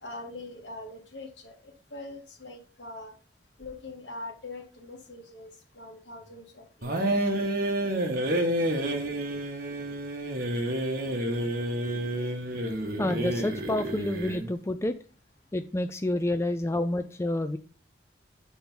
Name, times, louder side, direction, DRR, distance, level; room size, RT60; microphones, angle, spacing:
voice 1, 0.0-3.1 3.6-7.1, left 2 dB, 70° left, 1 dB, 2.0 m, -43 dB
sound 1, 6.8-14.5, right 1 dB, 50° right, 1.4 m, -29 dB
voice 2, 13.0-14.9 15.5-17.6, left 1 dB, 15° left, 9 dB, 0.3 m, -29 dB
7.0 x 4.5 x 5.5 m, 0.38 s
head